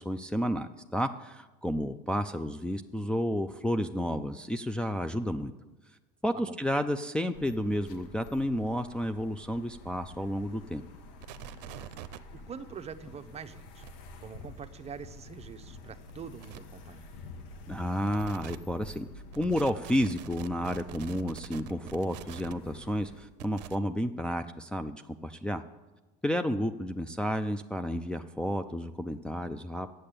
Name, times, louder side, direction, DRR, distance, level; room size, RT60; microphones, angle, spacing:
voice 1, 0.0-5.5 6.2-10.8 17.7-19.1 19.3-25.6 26.2-29.9, equal, 5° left, 5 dB, 0.5 m, -31 dB
sound 1, 7.3-23.2, left 2 dB, 70° left, 1.4 m, -49 dB
sound 2, 11.2-12.2 13.6-13.9 14.6-14.7 16.1-16.2 16.4-16.6 18.0-18.6 19.3-22.5 23.4-23.8, right 12 dB, 85° right, 0.6 m, -44 dB
voice 2, 12.3-13.8 14.2-17.1, right 7 dB, 30° right, 10 dB, 0.8 m, -44 dB
8.7 x 7.7 x 8.4 m, 1.1 s
supercardioid pair, 95°, 21 cm